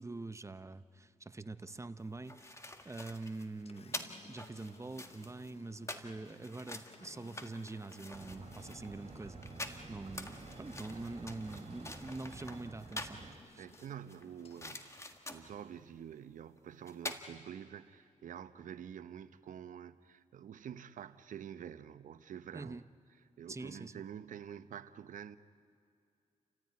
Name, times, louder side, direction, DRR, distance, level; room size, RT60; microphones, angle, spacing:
voice 1, 0.0-9.4 9.9-13.7 22.5-22.8 23.5-23.9, right 3 dB, 20° right, 0.8 m, -45 dB
Engine, 1.6-15.6, left 5 dB, 50° left, 1.2 m, -60 dB
sound 1, 2.0-13.3 13.7-15.6 16.6-16.7 16.9-17.2, left 2 dB, 20° left, 1.8 m, -47 dB
sound 2, 8.1-13.3, right 3 dB, 50° right, 3.1 m, -51 dB
voice 2, 13.6-22.8 23.4-25.4, right 9 dB, 85° right, 0.8 m, -48 dB
30.0 x 15.0 x 9.5 m
cardioid pair, 85°, 13 cm